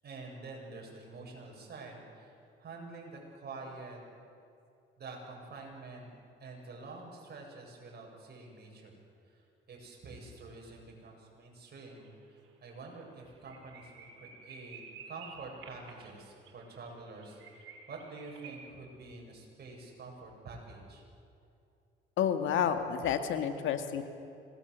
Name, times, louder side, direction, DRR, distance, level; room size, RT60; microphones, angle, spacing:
voice 1, 0.0-2.3 2.6-4.0 5.0-6.1 6.4-9.0 9.3-21.0, right 3 dB, 55° right, 0 dB, 7.9 m, -47 dB
sound 1, 11.7-12.1 12.4-12.5 12.9-13.0 13.3-18.6, right 5 dB, 85° right, 5.4 m, -52 dB
voice 2, 22.2-24.0, left 8 dB, 85° left, 7 dB, 2.0 m, -30 dB
26.5 x 20.0 x 8.2 m, 2.5 s
cardioid pair, 90°, 20 cm